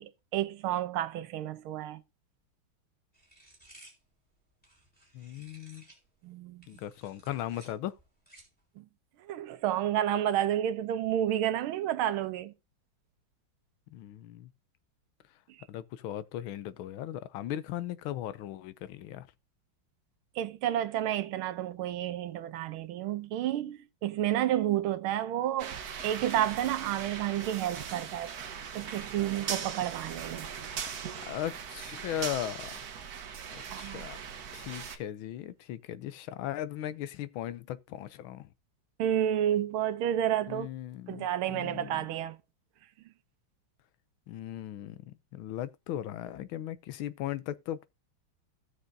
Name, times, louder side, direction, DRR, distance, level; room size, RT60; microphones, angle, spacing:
voice 1, 0.0-2.0 6.2-6.6 8.8-8.9 9.3-12.5 20.4-25.8 26.0-28.3 28.7-30.5 33.7-34.1 39.0-40.7 41.1-42.4, right 11 dB, 85° right, 1.6 m, -30 dB
sound 1, 3.1-6.1 6.5-8.6, right 1 dB, 5° left, 3.8 m, -57 dB
voice 2, 5.1-5.9 6.7-8.0 13.9-14.5 15.7-19.3 31.3-32.7 33.5-34.2 34.5-38.5 40.5-42.0 44.3-47.9, left 12 dB, 80° left, 1.5 m, -38 dB
sound 2, 25.6-35.0, right 7 dB, 55° right, 1.4 m, -40 dB
15.5 x 6.5 x 2.7 m
omnidirectional pair, 2.2 m